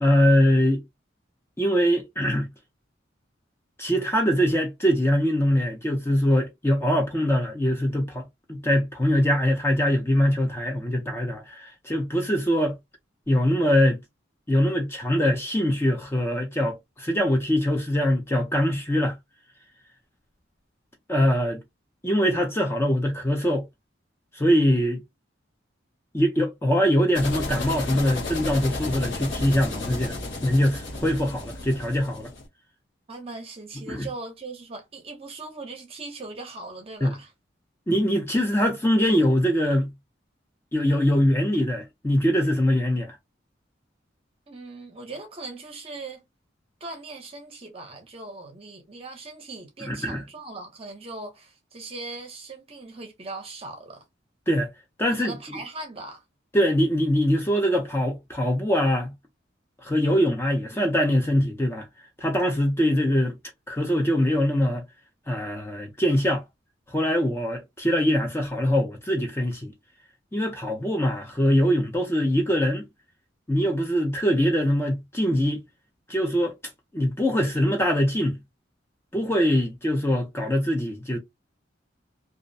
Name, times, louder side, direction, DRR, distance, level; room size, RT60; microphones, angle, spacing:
voice 1, 0.0-0.8 1.6-2.5 3.8-12.8 13.3-14.0 14.5-19.2 21.1-21.6 22.0-23.7 24.3-25.0 26.1-32.3 33.9-34.1 37.0-37.1 37.9-39.9 40.7-43.2 49.8-50.2 54.5-54.7 55.0-55.6 56.5-59.1 59.8-61.9 62.2-63.4 63.7-64.8 65.3-66.4 66.9-69.7 70.3-72.8 73.5-75.6 76.1-76.5 76.9-78.4 79.1-81.2, equal, 15° left, 0.4 m, -23 dB
sound 1, 27.1-32.4, left 2 dB, 70° left, 0.9 m, -33 dB
voice 2, 33.1-37.3 44.5-46.2 46.8-54.0 55.2-56.2, right 3 dB, 30° right, 0.6 m, -39 dB
2.4 x 2.0 x 2.6 m
head